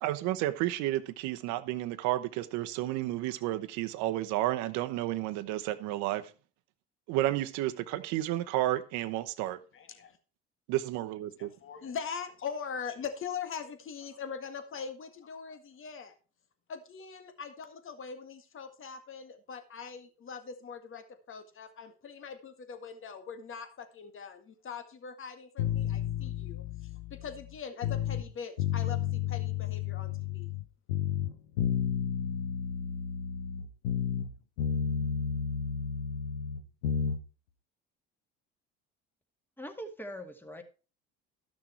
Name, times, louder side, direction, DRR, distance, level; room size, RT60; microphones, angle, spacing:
voice 1, 0.0-6.3 7.1-9.6 10.7-11.5, right 15 dB, 70° right, 1.0 m, -31 dB
voice 2, 9.7-10.2 11.4-16.2 16.7-26.6 27.1-30.5, left 6 dB, 45° left, 1.8 m, -42 dB
sound 1, 25.6-28.3 28.6-30.6 30.9-34.3 34.6-37.2, left 8 dB, 90° left, 0.9 m, -32 dB
voice 3, 39.6-40.6, equal, 5° left, 2.1 m, -42 dB
13.0 x 6.4 x 4.5 m
hypercardioid pair, 70°, 30 cm